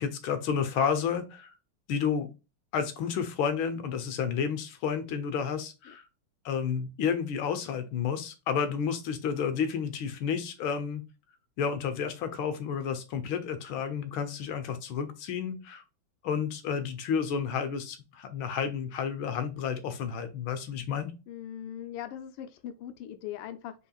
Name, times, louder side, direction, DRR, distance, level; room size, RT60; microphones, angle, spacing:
voice 1, 0.0-1.5 1.9-2.3 2.7-6.0 6.4-11.0 11.6-15.8 16.2-21.1, left 7 dB, 70° left, 1.6 m, -31 dB
voice 2, 21.3-23.7, left 10 dB, 90° left, 1.7 m, -40 dB
5.6 x 3.8 x 2.3 m
omnidirectional pair, 2.4 m